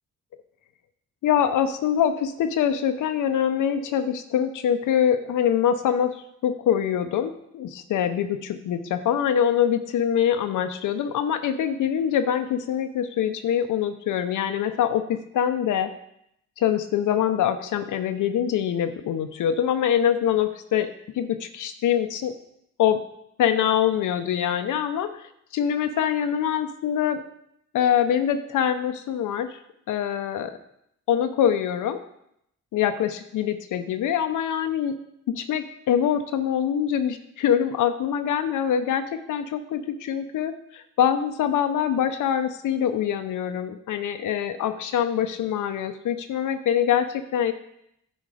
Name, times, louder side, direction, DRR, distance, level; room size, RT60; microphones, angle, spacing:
voice 1, 1.2-15.9 16.6-22.3 22.8-23.0 23.4-25.1 25.5-27.2 27.7-29.6 29.9-30.6 31.1-32.0 32.7-35.0 35.3-47.5, left 9 dB, 85° left, 8 dB, 0.6 m, -24 dB
9.9 x 4.4 x 4.9 m, 0.75 s
cardioid pair, 85°, 30 cm